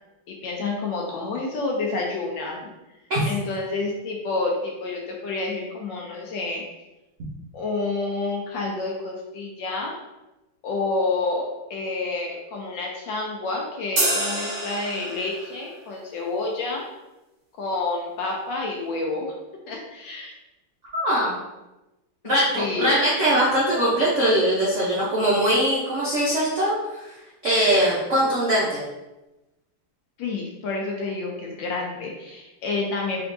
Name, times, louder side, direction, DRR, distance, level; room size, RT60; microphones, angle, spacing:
voice 1, 0.3-2.7 3.2-6.6 7.5-9.9 10.6-11.4 11.7-16.8 17.6-19.3 19.7-20.3 22.2-22.9 30.2-33.2, left 3 dB, 70° left, -1 dB, 1.2 m, -29 dB
sound 1, 14.0-15.6, right 1 dB, 45° right, 1.5 m, -26 dB
voice 2, 20.9-21.4 22.2-26.8 27.0-27.1 27.4-28.8, right 1 dB, 80° right, -7 dB, 0.6 m, -21 dB
3.8 x 3.4 x 2.6 m, 1.0 s
omnidirectional pair, 2.4 m